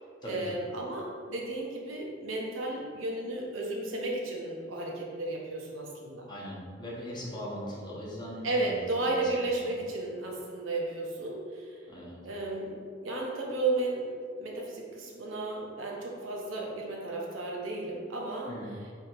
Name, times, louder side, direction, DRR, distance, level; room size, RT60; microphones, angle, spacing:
voice 1, 0.2-6.3 8.4-11.8 12.2-18.5, right 2 dB, 80° right, -2 dB, 0.8 m, -33 dB
voice 2, 6.3-9.2 9.6-9.7 11.9-12.2 18.5-18.8, equal, 20° left, -5 dB, 0.8 m, -40 dB
3.5 x 2.8 x 4.3 m, 2.1 s
head